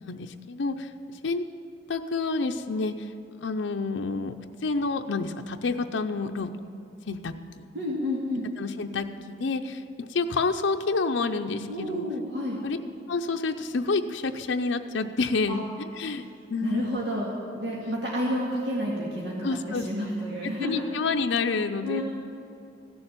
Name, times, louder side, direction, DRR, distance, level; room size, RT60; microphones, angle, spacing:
voice 1, 0.0-0.9 1.2-1.4 1.9-3.1 3.4-4.3 4.6-6.5 7.1-7.7 8.6-12.1 12.6-12.8 13.1-17.1 19.4-19.8 20.6-22.0, left 3 dB, 85° left, 5 dB, 0.6 m, -29 dB
voice 2, 7.7-8.5 11.7-12.6 15.5-15.6 16.6-20.8 21.8-22.0, equal, 65° right, -4 dB, 2.0 m, -30 dB
15.5 x 7.0 x 9.0 m, 2.7 s
head